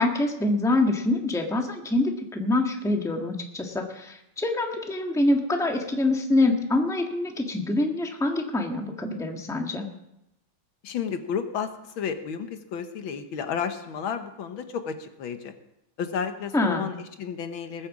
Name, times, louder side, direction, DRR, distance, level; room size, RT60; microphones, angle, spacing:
voice 1, 0.0-9.9 16.5-16.9, left 2 dB, ahead, 3 dB, 1.2 m, -25 dB
voice 2, 10.8-15.5 16.0-17.9, left 7 dB, 80° left, 8 dB, 1.9 m, -32 dB
20.0 x 7.9 x 7.3 m, 0.86 s
omnidirectional pair, 2.2 m